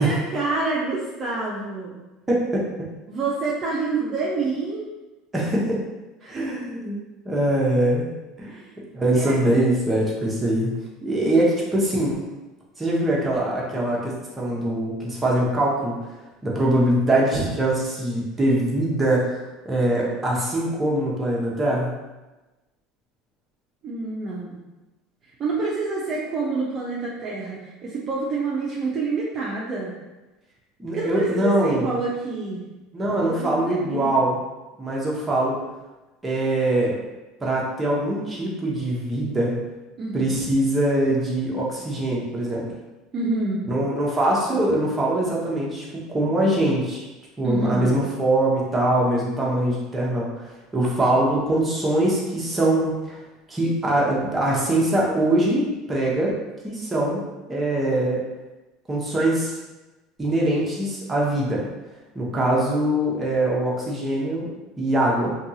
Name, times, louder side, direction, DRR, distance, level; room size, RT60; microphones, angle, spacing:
voice 1, 0.0-2.0 3.1-4.9 6.2-6.4 8.4-9.4 23.8-24.6 25.4-29.9 30.9-32.6 33.4-34.2 40.0-40.3 43.1-43.7 47.4-48.0, right 3 dB, 40° right, -5 dB, 0.5 m, -27 dB
voice 2, 2.3-2.7 5.3-5.8 6.3-7.0 7.2-8.1 8.4-8.5 8.9-10.7 11.0-12.2 12.8-15.9 16.4-19.4 19.6-21.9 30.8-31.9 32.9-34.4 34.8-35.6 36.2-37.0 37.4-39.6 40.1-42.7 43.7-47.0 47.4-53.2 53.5-56.3 56.6-57.2 57.5-58.2 58.9-59.5 60.2-61.7 62.1-65.3, right 1 dB, 15° right, -4 dB, 0.8 m, -22 dB
2.6 x 2.3 x 2.7 m, 1.1 s
supercardioid pair, 100°, 0 cm